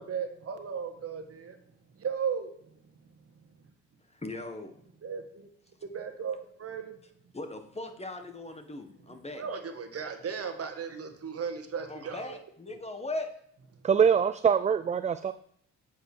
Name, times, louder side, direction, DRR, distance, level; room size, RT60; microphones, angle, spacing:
voice 1, 0.0-1.6 1.9-2.5 5.0-5.5 5.9-6.9 9.3-12.4 12.7-12.8, right 6 dB, 45° right, 6 dB, 1.7 m, -36 dB
voice 2, 4.1-4.7 7.3-9.4 11.9-13.3, left 2 dB, 20° left, 7 dB, 1.6 m, -39 dB
voice 3, 13.8-15.3, right 7 dB, 20° right, 12 dB, 0.4 m, -23 dB
8.0 x 5.3 x 6.1 m, 0.68 s
supercardioid pair, 65°, 32 cm